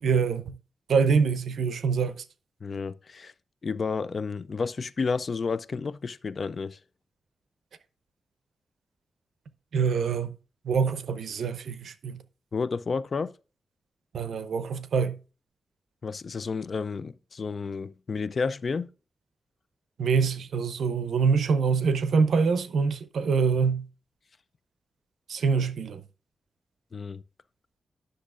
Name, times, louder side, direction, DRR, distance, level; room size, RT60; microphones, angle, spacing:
voice 1, 0.0-0.6 0.9-2.2 9.7-10.3 10.6-12.2 14.1-15.2 20.0-23.9 25.3-26.0, right 5 dB, 80° right, 0.7 m, -25 dB
voice 2, 2.6-3.3 3.6-6.8 12.5-13.3 16.0-18.9 26.9-27.2, left 4 dB, 45° left, 0.3 m, -31 dB
10.0 x 6.4 x 2.4 m
wide cardioid pair, 140°, 0 cm